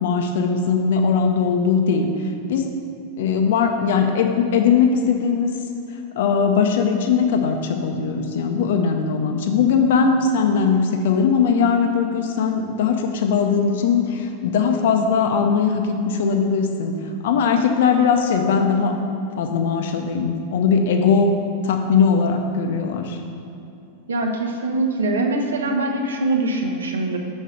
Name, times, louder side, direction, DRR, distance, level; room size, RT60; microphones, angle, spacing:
voice 1, 0.0-2.8 3.2-5.5 6.1-17.0 17.2-19.0 19.4-21.3 21.6-23.2, left 6 dB, 55° left, 5 dB, 0.5 m, -20 dB
voice 2, 24.1-27.2, right 2 dB, 70° right, 3 dB, 0.8 m, -23 dB
6.3 x 5.2 x 6.2 m, 2.7 s
figure-of-eight pair, 90°, 0 cm